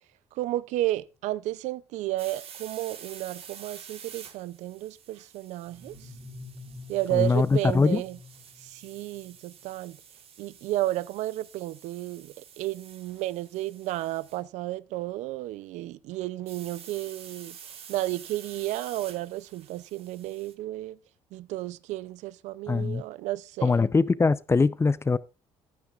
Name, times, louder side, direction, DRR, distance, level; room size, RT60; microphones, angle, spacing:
voice 1, 0.3-6.1 6.9-8.2 8.6-10.0 10.4-21.0 21.3-23.9, right 16 dB, 80° right, 0.5 m, -32 dB
sound 1, 2.2-14.4 16.5-20.5, right 7 dB, 55° right, 1.6 m, -49 dB
sound 2, 5.7-9.3, left 2 dB, 20° right, 3.2 m, -48 dB
voice 2, 7.1-8.0 22.7-23.0 23.6-25.2, left 4 dB, 20° left, 0.5 m, -22 dB
14.5 x 9.9 x 2.4 m
supercardioid pair, 85°, 12 cm